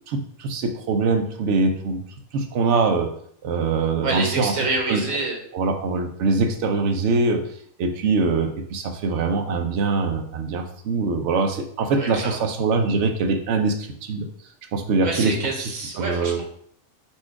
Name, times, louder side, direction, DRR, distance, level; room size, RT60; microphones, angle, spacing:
voice 1, 0.1-2.0 2.3-3.1 3.4-4.5 4.9-5.0 5.5-7.5 7.8-14.3 14.7-15.3 16.0-16.4, right 4 dB, 65° right, 5 dB, 0.8 m, -23 dB
voice 2, 4.0-5.4 11.9-12.5 15.0-16.4, right 3 dB, 80° right, 0 dB, 1.4 m, -27 dB
4.4 x 2.3 x 4.6 m, 0.65 s
omnidirectional pair, 1.4 m